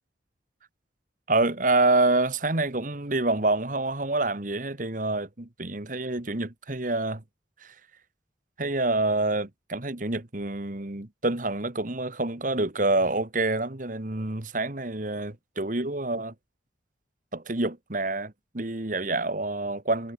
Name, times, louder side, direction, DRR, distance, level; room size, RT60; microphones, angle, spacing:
voice 1, 1.3-7.2 7.6-7.7 8.6-16.3 17.3-20.1, right 2 dB, 45° right, 1.6 m, -27 dB
head